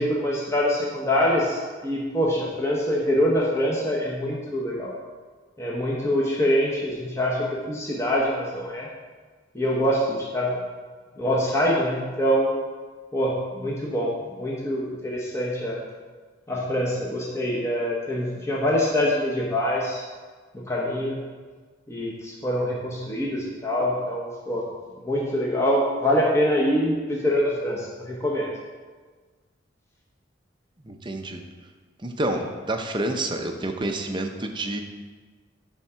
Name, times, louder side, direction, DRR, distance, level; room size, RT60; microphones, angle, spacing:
voice 1, 0.0-4.9 5.6-8.9 9.5-10.6 11.2-12.5 13.1-14.1 14.4-15.8 16.5-20.0 20.5-21.2 21.9-24.6 25.0-28.5 32.2-32.4, equal, 15° left, -4 dB, 1.0 m, -24 dB
voice 2, 30.9-31.4 32.0-34.8, right 1 dB, 25° right, 4 dB, 0.7 m, -28 dB
10.5 x 3.7 x 5.6 m, 1.4 s
head